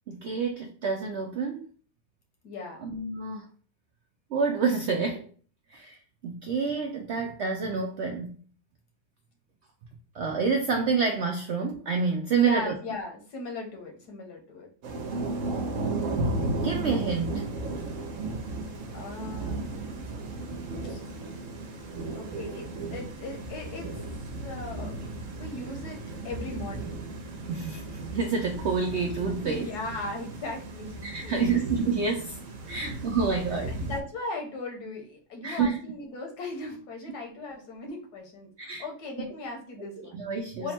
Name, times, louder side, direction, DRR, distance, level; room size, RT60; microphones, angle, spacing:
voice 1, 0.1-1.7 2.8-3.5 4.3-5.2 5.7-6.0 6.2-8.4 10.1-12.7 16.5-17.5 27.5-27.8 28.1-29.7 31.0-32.4 32.7-33.7 35.4-35.8 38.6-38.9 39.8-40.7, right 5 dB, 75° right, 2 dB, 0.6 m, -28 dB
voice 2, 2.4-2.9 12.3-14.7 18.9-19.7 20.8-21.0 22.1-23.9 24.3-24.9 25.4-27.0 29.4-31.7 32.7-33.0 33.7-40.2 40.6-40.7, left 2 dB, 80° left, 1 dB, 1.5 m, -38 dB
Thunder / Rain, 14.8-34.0, right 2 dB, 60° right, 1.0 m, -35 dB
3.6 x 2.1 x 4.2 m, 0.43 s
omnidirectional pair, 1.7 m